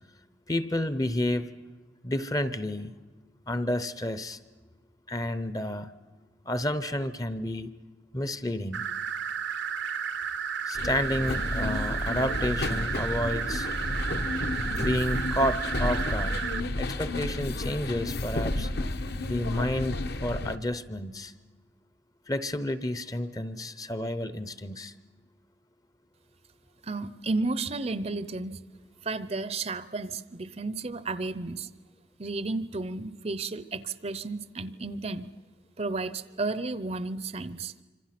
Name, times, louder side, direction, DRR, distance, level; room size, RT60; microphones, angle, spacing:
voice 1, 0.5-1.5 2.0-2.9 3.5-4.4 5.1-5.9 6.5-7.7 8.1-8.8 10.7-13.7 14.8-16.4 16.8-18.7 19.3-21.3 22.3-24.9, left 1 dB, 20° left, 14 dB, 0.7 m, -30 dB
sound 1, 8.7-16.6, right 7 dB, 70° right, 0.8 m, -33 dB
sound 2, 10.7-20.6, left 2 dB, 55° left, 1.1 m, -31 dB
voice 2, 26.8-28.6 29.0-31.7 32.2-35.3 35.8-37.7, right 3 dB, 35° right, 15 dB, 0.6 m, -32 dB
26.0 x 26.0 x 5.9 m, 1.4 s
head